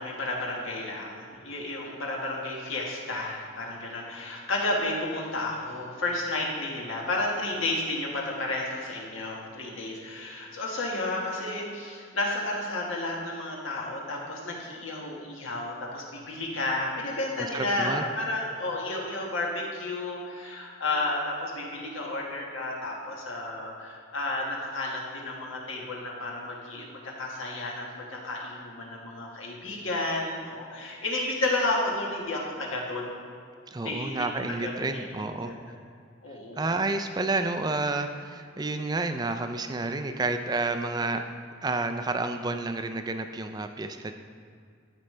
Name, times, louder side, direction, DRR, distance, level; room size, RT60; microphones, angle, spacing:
voice 1, 0.0-33.1 33.8-35.0 35.4-35.6 36.2-36.6, left 2 dB, 75° left, -2 dB, 1.6 m, -32 dB
voice 2, 17.4-18.1 33.7-35.5 36.6-41.2 41.6-44.1, right 3 dB, 20° right, 7 dB, 0.3 m, -30 dB
12.5 x 5.2 x 3.3 m, 2.3 s
head